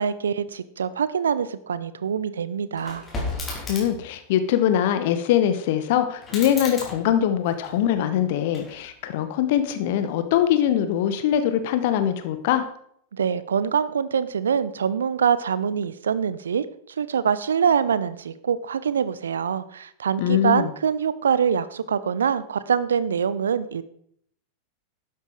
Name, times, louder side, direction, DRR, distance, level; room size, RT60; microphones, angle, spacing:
voice 1, 0.0-3.0 13.1-16.7 17.0-23.8, right 7 dB, 65° right, 16 dB, 0.7 m, -24 dB
sound 1, 2.7-4.1 6.2-8.0 8.5-9.2, left 2 dB, 20° left, 4.6 m, -35 dB
voice 2, 3.7-12.6 20.2-20.7, left 10 dB, 50° left, 10 dB, 1.1 m, -22 dB
12.5 x 9.5 x 4.6 m, 0.67 s
figure-of-eight pair, 90°, 0 cm